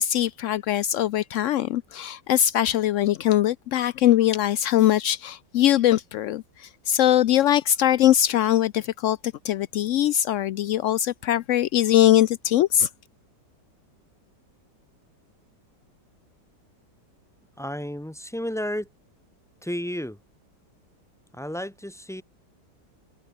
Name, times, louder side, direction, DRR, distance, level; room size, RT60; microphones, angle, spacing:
voice 1, 0.0-9.2 9.4-12.9, left 12 dB, 80° left, 0.7 m, -21 dB
voice 2, 17.6-18.9 19.6-20.2 21.3-22.2, equal, ahead, 2.9 m, -32 dB
omnidirectional pair, 1.9 m